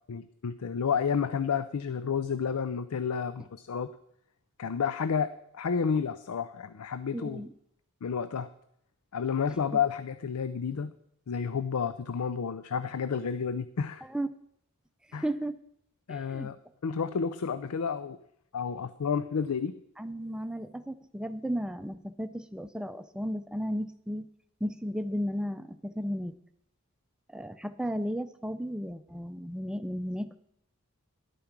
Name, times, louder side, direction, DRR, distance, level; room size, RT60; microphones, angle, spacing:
voice 1, 0.1-3.9 4.6-7.4 8.0-8.5 9.1-10.9 11.3-14.0 15.1-15.2 16.1-16.6 16.8-18.2 18.5-19.8, left 6 dB, 80° left, 12 dB, 0.5 m, -30 dB
voice 2, 7.1-7.5 14.1-14.3 15.1-15.6 16.1-16.5 20.0-24.3 24.6-26.3 27.3-30.4, equal, 5° right, 11 dB, 0.5 m, -34 dB
11.5 x 8.6 x 6.0 m, 0.74 s
head